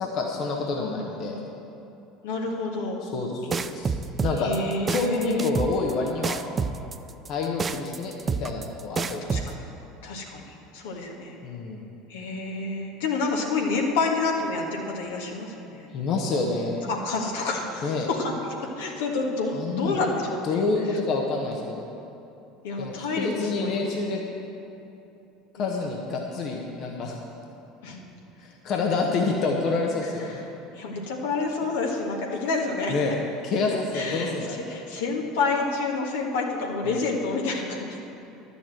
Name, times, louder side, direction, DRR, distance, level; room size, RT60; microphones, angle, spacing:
voice 1, 0.0-1.4 3.0-3.9 4.2-4.5 4.9-6.4 7.3-9.4 11.4-11.8 15.9-16.8 17.8-18.1 19.5-20.0 20.4-21.9 22.8-24.2 25.6-27.2 28.4-30.4 32.9-33.1 33.4-34.8 36.8-37.0, left 3 dB, 50° left, 0 dB, 1.3 m, -28 dB
voice 2, 0.8-1.5 2.2-3.0 4.4-5.5 9.3-9.6 10.0-11.3 12.1-15.9 16.9-18.3 18.6-21.0 22.6-23.8 25.5-25.8 27.8-28.0 30.2-32.9 33.9-34.3 34.7-38.0, left 3 dB, 70° left, -1 dB, 1.6 m, -29 dB
sound 1, 3.5-9.5, right 5 dB, 25° right, 0.5 m, -28 dB
11.5 x 7.0 x 7.8 m, 2.9 s
figure-of-eight pair, 70°, 0 cm